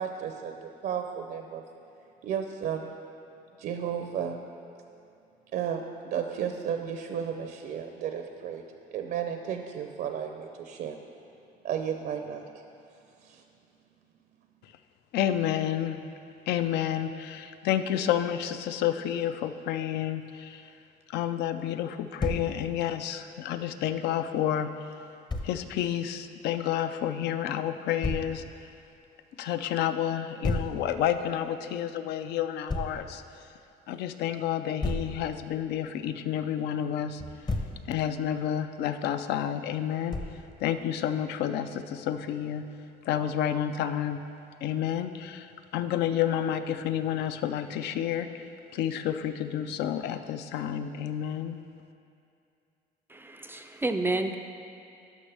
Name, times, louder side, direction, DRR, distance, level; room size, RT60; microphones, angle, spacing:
voice 1, 0.0-1.6 2.2-2.9 3.6-4.4 5.5-8.6 8.9-11.0 11.6-12.4 13.2-13.4, right 8 dB, 65° right, 5 dB, 0.5 m, -33 dB
voice 2, 15.1-16.0 16.5-20.6 21.1-24.7 25.4-28.4 29.4-33.2 33.9-37.2 37.9-40.2 40.6-42.6 43.1-44.2 44.6-48.5 48.7-51.6, left 10 dB, 80° left, 10 dB, 0.4 m, -30 dB
Thump thud, 22.2-22.5 25.3-25.5 28.0-28.3 30.4-30.8 32.7-33.0 34.8-35.2 37.2-37.8 40.1-40.4, left 2 dB, 25° left, 0.7 m, -30 dB
voice 3, 53.1-54.3, right 2 dB, 15° right, 6 dB, 0.3 m, -30 dB
11.5 x 6.1 x 3.4 m, 2.6 s
cardioid pair, 110°, 17 cm